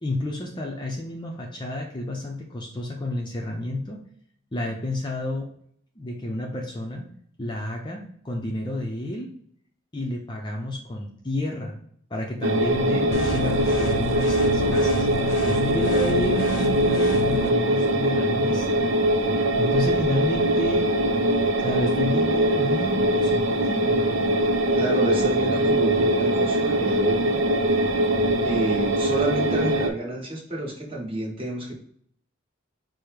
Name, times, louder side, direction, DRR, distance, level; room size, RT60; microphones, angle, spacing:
voice 1, 0.0-4.0 4.5-5.5 6.0-7.1 7.4-9.3 9.9-11.8 12.1-15.1 15.4-18.9 19.6-20.9 21.6-24.1, left 1 dB, 20° left, 0 dB, 0.5 m, -30 dB
sound 1, 12.4-29.9, right 1 dB, 85° right, 0.6 m, -22 dB
sound 2, 13.1-17.5, left 4 dB, 80° left, 0.4 m, -30 dB
voice 2, 24.7-27.4 28.4-31.8, right 1 dB, 25° right, -4 dB, 1.3 m, -30 dB
5.0 x 2.1 x 4.6 m, 0.64 s
head